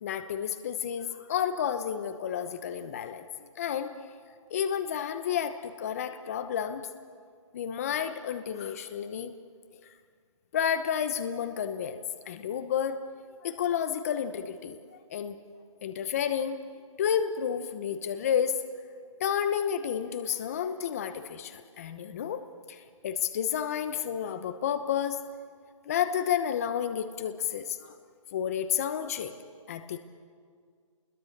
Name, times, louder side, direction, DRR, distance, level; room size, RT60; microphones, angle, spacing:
voice 1, 0.0-3.2 3.6-3.9 4.5-6.8 7.5-9.3 10.5-13.0 13.4-14.8 15.1-15.4 15.8-16.6 17.0-18.6 19.2-22.4 22.7-25.2 25.9-28.0 28.3-29.3 29.7-30.0, left 8 dB, 30° left, 10 dB, 1.0 m, -31 dB
27.5 x 21.5 x 6.7 m, 2.1 s
hypercardioid pair, 165°, 17 cm